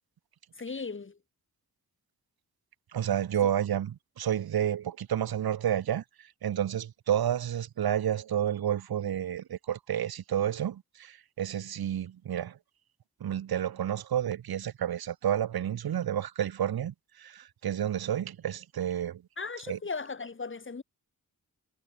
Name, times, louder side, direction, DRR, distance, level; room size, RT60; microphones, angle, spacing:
voice 1, 0.6-1.2 19.4-20.8, left 4 dB, 30° left, 1.7 m, -37 dB
voice 2, 2.9-6.0 6.4-12.6 13.2-19.2 19.7-19.8, right 10 dB, 70° right, 0.9 m, -30 dB
wide cardioid pair, 105°, 38 cm